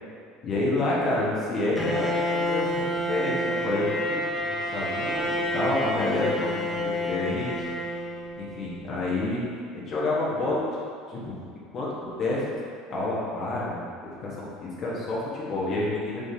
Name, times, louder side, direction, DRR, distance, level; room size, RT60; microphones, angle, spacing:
voice 1, 0.4-7.7 8.4-9.4 9.7-10.7 11.1-11.4 11.7-12.6 12.9-13.9 14.2-16.2, left 2 dB, 50° left, -6 dB, 1.1 m, -29 dB
Bowed string instrument, 1.8-8.7, left 1 dB, 10° left, 0.7 m, -29 dB
4.9 x 3.5 x 2.8 m, 2.3 s
supercardioid pair, 85°, 0 cm